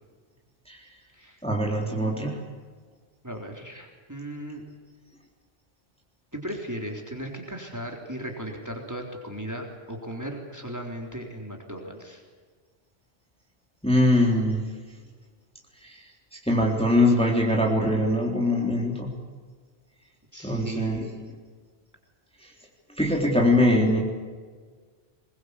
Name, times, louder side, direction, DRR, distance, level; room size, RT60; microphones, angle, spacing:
voice 1, 1.4-2.4 13.8-14.6 16.5-19.1 20.4-21.3 23.0-24.0, left 1 dB, 5° left, -1 dB, 3.6 m, -22 dB
voice 2, 3.2-4.6 6.3-12.2 20.3-21.2, right 1 dB, 15° right, 1 dB, 3.8 m, -36 dB
22.5 x 21.5 x 8.4 m, 1.5 s
omnidirectional pair, 1.1 m